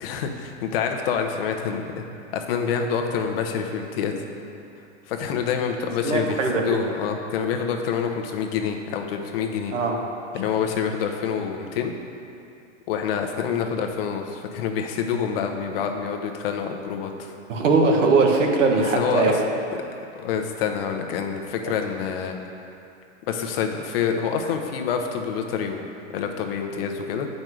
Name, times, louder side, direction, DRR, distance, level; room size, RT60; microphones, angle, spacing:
voice 1, 0.0-2.0 2.3-4.2 5.1-9.7 10.3-11.9 12.9-17.3 18.7-19.4 20.1-22.3 23.3-27.3, left 7 dB, 50° left, 4 dB, 0.9 m, -27 dB
voice 2, 6.0-6.8 9.7-10.0 17.5-19.4, right 3 dB, 80° right, 1 dB, 1.5 m, -20 dB
7.6 x 5.4 x 6.1 m, 2.6 s
hypercardioid pair, 145°, 37 cm